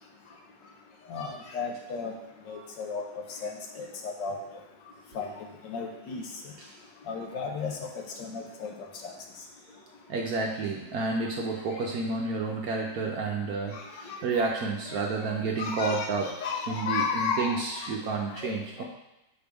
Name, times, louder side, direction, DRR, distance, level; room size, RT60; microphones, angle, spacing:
voice 1, 1.1-2.1 2.5-3.0 3.3-4.4 5.1-6.3 7.1-8.7 9.0-9.1 11.7-11.9 13.7-14.5 14.9-17.9 18.3-18.8, left 5 dB, 70° left, 1 dB, 1.5 m, -34 dB
voice 2, 10.1-16.3 16.7-18.8, right 4 dB, 65° right, 0 dB, 1.0 m, -30 dB
6.6 x 5.0 x 3.4 m, 0.93 s
omnidirectional pair, 2.1 m